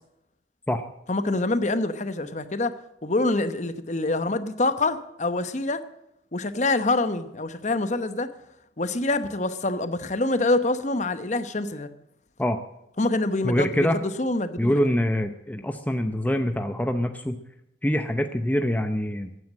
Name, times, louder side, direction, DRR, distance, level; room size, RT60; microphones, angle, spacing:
voice 1, 1.1-2.7 3.0-5.8 6.3-8.3 8.8-11.9 13.0-14.9, left 2 dB, 40° left, 0.9 m, -26 dB
voice 2, 13.4-14.0 14.6-17.4 17.8-19.3, equal, 10° left, 0.6 m, -24 dB
15.0 x 9.5 x 7.5 m
head